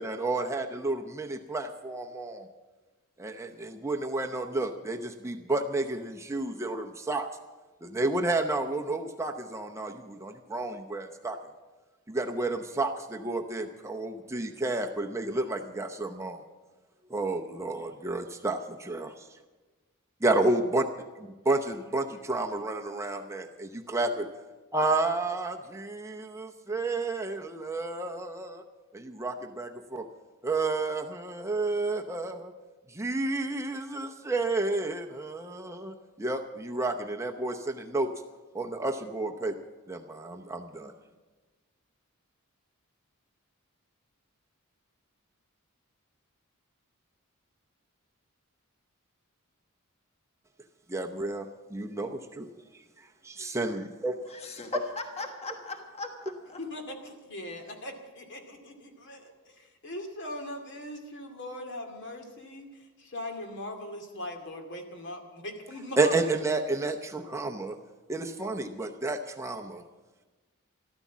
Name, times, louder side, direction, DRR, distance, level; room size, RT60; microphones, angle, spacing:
voice 1, 0.0-2.5 3.2-7.3 7.8-11.4 12.1-16.4 17.1-19.3 20.2-20.8 21.4-24.3 24.7-28.6 28.9-30.1 30.4-32.5 32.9-38.1 38.5-39.5 39.9-40.9 50.9-52.5 53.0-54.2 54.7-54.8 66.0-67.8 68.1-69.8, right 2 dB, 15° right, 3 dB, 0.7 m, -31 dB
voice 2, 54.3-56.6, left 2 dB, 30° left, 5 dB, 1.3 m, -38 dB
voice 3, 56.6-66.1, left 1 dB, 55° left, 4 dB, 2.3 m, -40 dB
14.0 x 13.0 x 7.3 m, 1.3 s
head